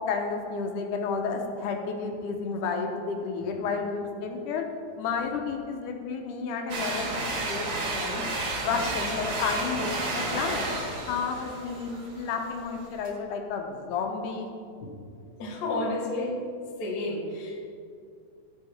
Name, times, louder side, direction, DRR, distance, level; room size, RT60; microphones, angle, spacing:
voice 1, 0.1-4.7 5.0-8.2 8.5-10.6 11.1-14.5, left 5 dB, 85° left, 3 dB, 2.4 m, -31 dB
sound 1, 6.7-13.1, right 2 dB, 50° right, 1.8 m, -32 dB
voice 2, 15.4-16.4 16.8-17.7, left 2 dB, 45° left, 0 dB, 1.4 m, -31 dB
14.5 x 4.8 x 5.8 m, 2.4 s
omnidirectional pair, 3.6 m